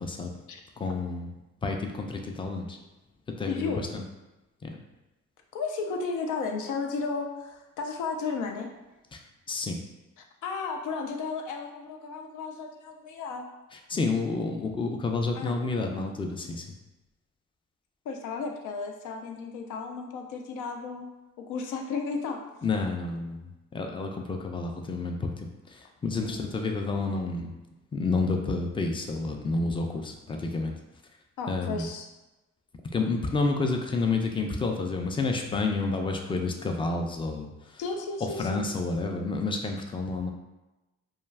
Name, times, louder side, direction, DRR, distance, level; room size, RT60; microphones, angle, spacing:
voice 1, 0.0-0.3 0.8-1.3 1.6-2.8 3.3-4.0 4.6-4.8 9.1-9.2 9.5-9.8 13.7-16.7 22.6-27.5 27.9-30.7 31.5-31.9 32.9-37.8 38.2-40.3, left 3 dB, 15° left, 3 dB, 0.4 m, -30 dB
voice 2, 3.5-3.8 5.5-8.7 10.4-13.5 15.4-15.5 18.1-21.1 21.4-22.4 26.2-26.5 31.4-32.1 37.8-38.6, left 4 dB, 80° left, 3 dB, 0.5 m, -33 dB
2.3 x 2.2 x 3.3 m, 1.0 s
cardioid pair, 90°, 30 cm